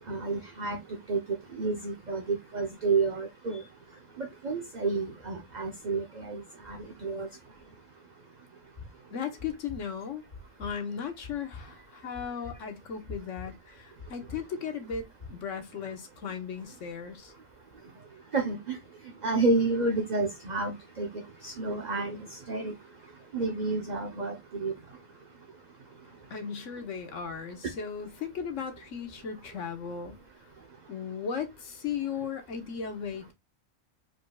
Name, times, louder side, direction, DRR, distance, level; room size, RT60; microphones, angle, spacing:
voice 1, 0.1-0.8 1.1-1.2 1.6-3.6 4.2-7.3 18.3-18.8 19.2-21.1 21.4-22.2 22.5-22.7 23.3-24.7, right 3 dB, 40° right, 0.8 m, -30 dB
sound 1, 8.6-8.9 9.4-9.8 10.3-10.7 11.2-11.6 12.1-12.6 13.1-13.5 14.0-14.4 14.9-15.3, left 4 dB, 35° left, 2.5 m, -44 dB
voice 2, 9.1-10.3 10.6-17.3 26.3-30.2 30.9-33.3, left 6 dB, 65° left, 1.5 m, -36 dB
4.8 x 4.6 x 2.3 m
omnidirectional pair, 1.4 m